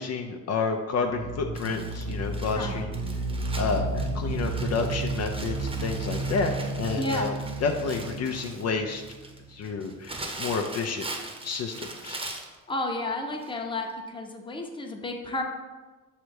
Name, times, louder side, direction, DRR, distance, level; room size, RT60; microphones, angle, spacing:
voice 1, 0.0-2.9 3.6-7.3 7.6-9.0 9.5-11.1 11.4-12.2, left 4 dB, 60° left, 3 dB, 0.6 m, -30 dB
sound 1, 0.9-9.6, right 2 dB, 60° right, 0.6 m, -32 dB
Crumpling crinkling, 1.6-12.6 13.4-13.5 13.9-14.0, right 2 dB, 20° right, 0.8 m, -41 dB
voice 2, 7.0-7.4 12.7-15.4, left 2 dB, 15° left, 2 dB, 0.8 m, -31 dB
6.2 x 3.2 x 4.7 m, 1.3 s
cardioid pair, 90°, 30 cm